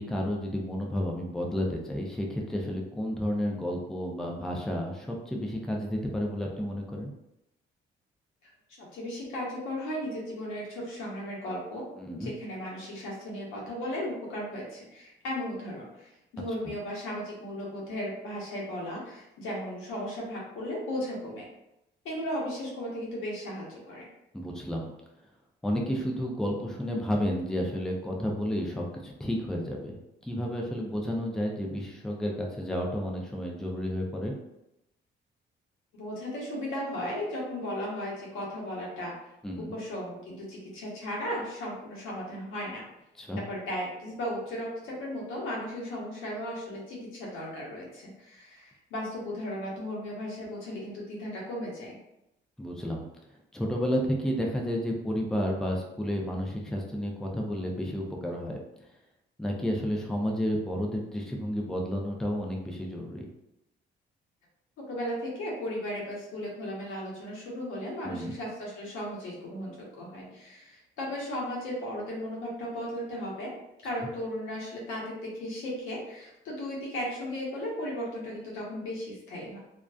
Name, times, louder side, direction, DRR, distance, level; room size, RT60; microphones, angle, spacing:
voice 1, 0.0-7.1 12.0-12.3 24.3-24.9 25.6-34.3 39.4-39.7 43.2-43.4 52.6-53.0 53.5-58.6 59.4-63.3 68.0-68.3, equal, 5° left, -1 dB, 0.4 m, -31 dB
voice 2, 8.8-11.9 12.2-21.4 22.0-24.1 35.9-39.1 39.7-42.8 43.5-52.0 64.9-73.5 73.8-79.6, equal, 90° left, -4 dB, 0.9 m, -36 dB
2.4 x 2.2 x 2.3 m, 0.87 s
cardioid pair, 90°, 20 cm